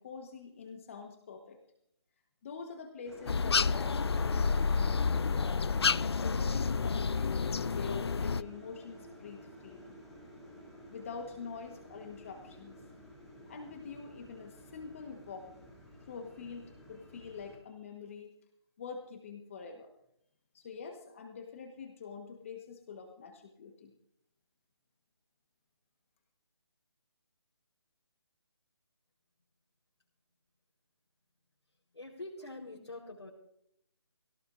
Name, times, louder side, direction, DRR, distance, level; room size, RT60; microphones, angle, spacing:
voice 1, 0.0-1.6 2.4-5.0 6.0-10.0 10.9-12.8 13.5-15.5 16.1-18.3 18.8-19.9 20.5-23.9, left 5 dB, 30° left, 3 dB, 1.4 m, -45 dB
sound 1, 3.0-17.6, equal, ahead, 2.8 m, -52 dB
sound 2, 3.3-8.4, left 5 dB, 70° left, 0.5 m, -29 dB
voice 2, 31.9-33.3, left 2 dB, 90° left, -2 dB, 4.3 m, -45 dB
21.0 x 17.0 x 2.6 m, 0.73 s
figure-of-eight pair, 165°, 14 cm